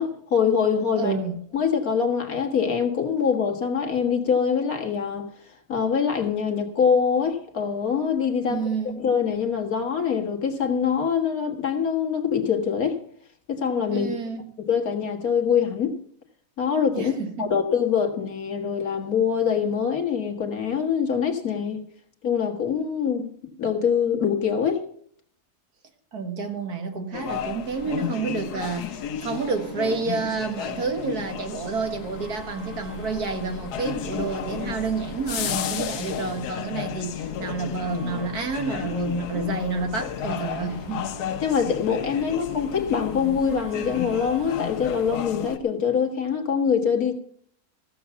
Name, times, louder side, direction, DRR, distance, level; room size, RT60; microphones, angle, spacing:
voice 1, 0.0-1.2 1.5-5.3 5.7-8.6 9.0-13.0 13.5-14.1 14.6-16.0 16.6-17.1 17.4-21.8 22.2-23.3 23.6-24.8 41.4-47.1, left 7 dB, 65° left, 2.1 m, -24 dB
voice 2, 1.0-1.4 8.5-9.0 13.9-14.4 16.9-17.5 26.1-41.1, right 4 dB, 75° right, 2.2 m, -29 dB
sound 1, 27.1-45.6, left 9 dB, 90° left, 1.3 m, -33 dB
sound 2, 27.7-45.3, right 1 dB, 55° right, 3.6 m, -46 dB
15.5 x 7.0 x 6.9 m
omnidirectional pair, 1.6 m